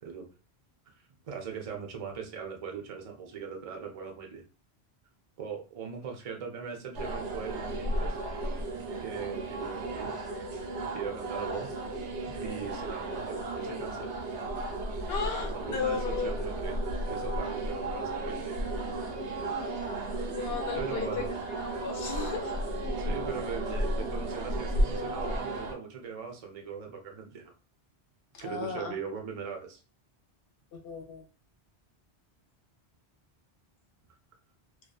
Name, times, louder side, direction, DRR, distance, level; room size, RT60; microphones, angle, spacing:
voice 1, 1.3-4.4 5.4-8.2 9.0-10.1 10.9-11.8 12.2-14.2 15.3-18.7 20.7-21.3 23.0-27.5 28.4-29.8, right 6 dB, 45° right, 2 dB, 0.5 m, -40 dB
sound 1, 6.9-25.7, right 1 dB, 85° right, 0.9 m, -34 dB
voice 2, 15.1-16.5 20.2-21.3 21.6-22.6 28.3-29.0 30.8-31.2, left 5 dB, 65° left, 3 dB, 0.9 m, -35 dB
2.5 x 2.3 x 2.3 m, 0.35 s
omnidirectional pair, 1.1 m